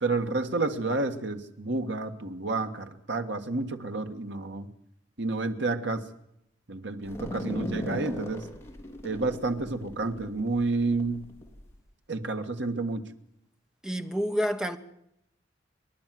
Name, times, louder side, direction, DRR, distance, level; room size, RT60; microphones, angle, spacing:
voice 1, 0.0-4.7 5.2-6.0 6.7-8.5 9.0-11.2 12.1-13.0, right 3 dB, 65° right, 1.7 m, -30 dB
sound 1, 7.0-11.7, equal, 15° left, 3.5 m, -38 dB
voice 2, 13.8-14.8, equal, 5° right, 1.3 m, -28 dB
29.5 x 11.5 x 7.7 m
head